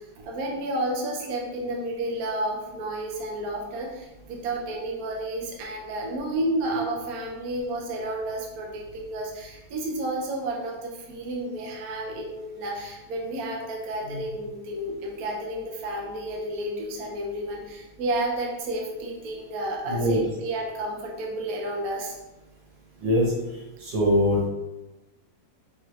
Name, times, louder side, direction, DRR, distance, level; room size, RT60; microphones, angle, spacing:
voice 1, 0.2-22.2, right 1 dB, 65° right, -1 dB, 1.0 m, -31 dB
voice 2, 19.9-20.2 23.0-23.3 23.8-24.5, equal, 80° right, -4 dB, 1.9 m, -22 dB
4.7 x 3.1 x 3.1 m, 1.0 s
omnidirectional pair, 2.0 m